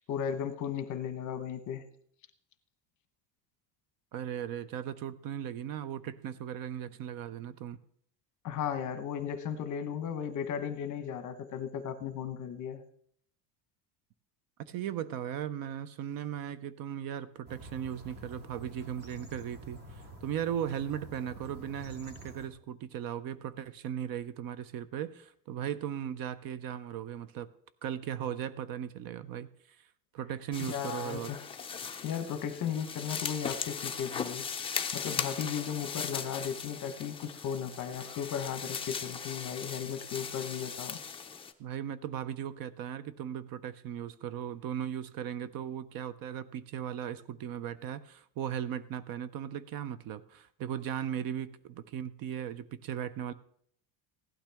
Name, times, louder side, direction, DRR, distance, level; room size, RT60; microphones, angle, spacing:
voice 1, 0.1-1.8 8.4-12.8 30.7-31.4 32.0-34.5 34.9-41.0, left 8 dB, 40° left, 9 dB, 1.0 m, -36 dB
voice 2, 4.1-7.8 14.6-27.5 27.8-29.9 30.1-31.3 41.6-53.3, right 9 dB, 50° right, 15 dB, 0.6 m, -37 dB
sound 1, 17.5-22.5, right 1 dB, 20° right, 1.8 m, -49 dB
sound 2, 30.5-41.5, left 6 dB, 15° left, 0.5 m, -38 dB
16.0 x 12.0 x 3.5 m, 0.66 s
cardioid pair, 175°, 45 cm